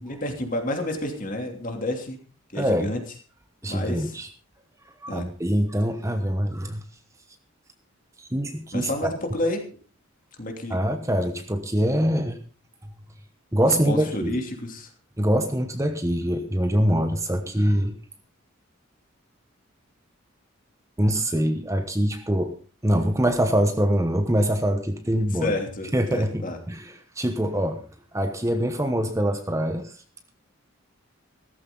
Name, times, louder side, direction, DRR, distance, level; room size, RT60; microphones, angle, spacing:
voice 1, 0.0-2.2 2.5-3.0 3.7-4.2 5.1-5.3 8.7-9.6 10.4-10.8 13.6-14.9 25.3-26.6, left 1 dB, 40° left, 4 dB, 3.0 m, -30 dB
voice 2, 2.5-2.9 3.6-4.3 5.0-6.8 8.2-8.9 10.7-12.4 13.5-14.4 15.2-17.9 21.0-22.6 22.8-25.5 25.9-27.8 28.1-29.9, equal, 15° right, 7 dB, 1.1 m, -24 dB
16.0 x 14.0 x 3.9 m, 0.38 s
head